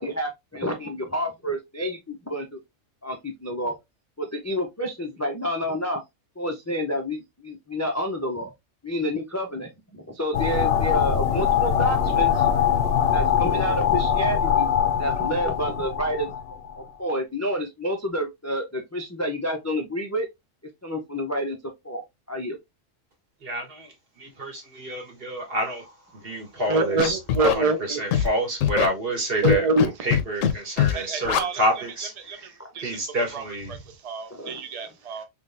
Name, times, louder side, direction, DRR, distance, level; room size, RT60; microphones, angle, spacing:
voice 1, 0.0-2.6 3.0-3.7 4.2-6.0 6.4-8.5 8.8-12.5 13.1-14.7 15.0-16.3 16.8-20.3 20.8-21.6 21.8-22.6 29.8-29.9 34.3-34.6, equal, 25° left, 0.3 m, -29 dB
sound 1, 10.3-16.7, left 8 dB, 65° left, 0.7 m, -22 dB
voice 2, 23.4-25.9 26.2-29.6 30.0-32.5 32.8-33.8, right 1 dB, 50° right, 1.6 m, -28 dB
voice 3, 26.7-28.1 29.4-29.9 30.9-31.6 32.2-33.0 33.3-35.2, right 3 dB, 65° right, 0.3 m, -26 dB
Scratching (performance technique), 27.0-27.5 28.1-28.3 28.6-28.9 29.4-29.9 30.1-30.5 30.8-30.9 31.2-31.4, left 9 dB, 85° left, 1.0 m, -21 dB
3.7 x 3.3 x 2.5 m
omnidirectional pair, 1.3 m